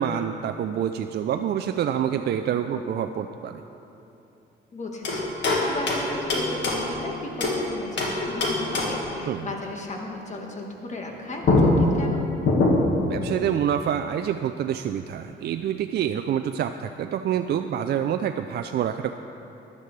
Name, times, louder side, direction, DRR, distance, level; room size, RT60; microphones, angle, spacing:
voice 1, 0.0-3.6 9.3-9.5 13.1-19.1, right 9 dB, 55° right, 7 dB, 0.4 m, -27 dB
voice 2, 4.7-12.2, left 2 dB, 35° left, 1 dB, 1.6 m, -35 dB
sound 1, 5.0-7.6 8.0-9.1 11.1-11.2 11.4-13.1, left 2 dB, 65° left, 1.8 m, -23 dB
13.5 x 10.5 x 3.3 m, 2.9 s
cardioid pair, 90°, 20 cm